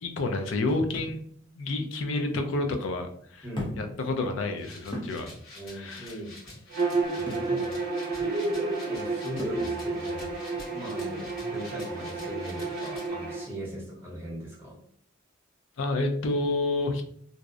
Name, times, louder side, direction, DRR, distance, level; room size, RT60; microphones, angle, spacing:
voice 1, 0.0-1.2 1.6-3.5 3.8-5.3 5.7-6.2 15.8-17.0, left 2 dB, 70° left, 6 dB, 0.4 m, -29 dB
sound 1, 0.7-1.2 2.3-2.4 3.5-4.0 4.4-4.5 4.9-5.2 7.3-7.5 9.4-9.7, left 1 dB, 25° left, 0.6 m, -36 dB
voice 2, 3.4-3.8 5.5-6.6 7.1-10.3 10.7-14.8, equal, 10° right, -5 dB, 0.8 m, -37 dB
sound 2, 4.6-13.1, left 2 dB, 90° left, 1.1 m, -49 dB
Bowed string instrument, 6.7-13.4, right 3 dB, 50° right, 0.5 m, -31 dB
2.6 x 2.0 x 2.3 m, 0.63 s
head